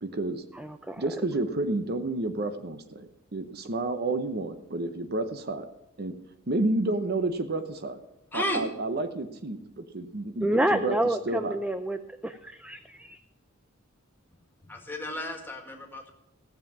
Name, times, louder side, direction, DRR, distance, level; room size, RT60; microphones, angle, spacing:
voice 1, 0.0-0.4 1.0-5.7 6.0-6.1 6.5-8.0 8.3-11.6, right 2 dB, 50° right, 10 dB, 0.8 m, -30 dB
voice 2, 0.6-1.0 10.4-12.0 12.2-13.2, right 1 dB, 5° right, 9 dB, 0.4 m, -28 dB
voice 3, 8.3-8.6 14.7-16.1, left 1 dB, 10° left, 2 dB, 1.8 m, -33 dB
16.0 x 7.4 x 6.0 m, 0.89 s
head